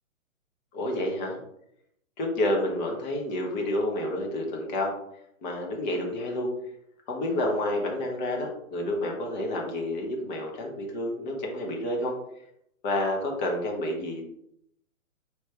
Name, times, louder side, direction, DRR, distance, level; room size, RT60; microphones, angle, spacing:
voice 1, 0.7-1.4 2.2-4.9 5.4-6.5 7.1-12.1 12.8-14.2, left 1 dB, 35° left, 0 dB, 1.1 m, -29 dB
3.2 x 3.2 x 4.3 m, 0.75 s
hypercardioid pair, 135°, 41 cm